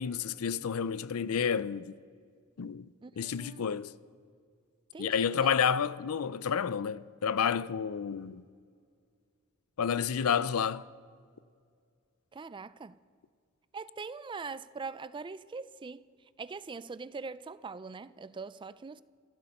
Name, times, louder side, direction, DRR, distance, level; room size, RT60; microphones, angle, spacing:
voice 1, 0.0-1.9 2.6-2.9 3.2-3.9 5.0-8.4 9.8-10.8, left 7 dB, 70° left, 0.5 m, -30 dB
voice 2, 3.0-3.7 4.9-5.5 12.3-13.0 13.7-16.1 16.4-19.0, right 4 dB, 20° right, 0.3 m, -42 dB
27.5 x 12.0 x 4.3 m
head